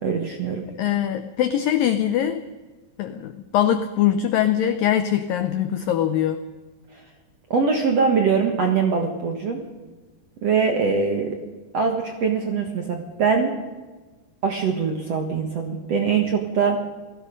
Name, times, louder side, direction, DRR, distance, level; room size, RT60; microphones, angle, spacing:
voice 1, 0.0-0.7 6.9-7.0 7.5-9.6 10.4-11.4 11.7-13.5 14.4-16.9, right 5 dB, 60° right, 3 dB, 1.8 m, -22 dB
voice 2, 0.8-2.4 3.0-6.4, left 10 dB, 80° left, 10 dB, 2.0 m, -22 dB
28.0 x 18.0 x 5.3 m, 1.3 s
omnidirectional pair, 5.1 m